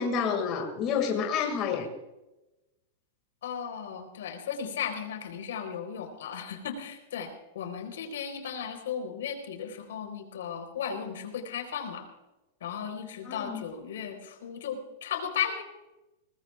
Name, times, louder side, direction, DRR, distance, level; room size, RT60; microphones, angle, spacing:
voice 1, 0.0-1.9 13.2-13.6, left 6 dB, 25° left, 2 dB, 2.1 m, -29 dB
voice 2, 3.4-12.1 12.6-15.6, left 7 dB, 80° left, 5 dB, 3.9 m, -35 dB
21.0 x 19.5 x 2.4 m, 0.99 s
supercardioid pair, 175°, 0 cm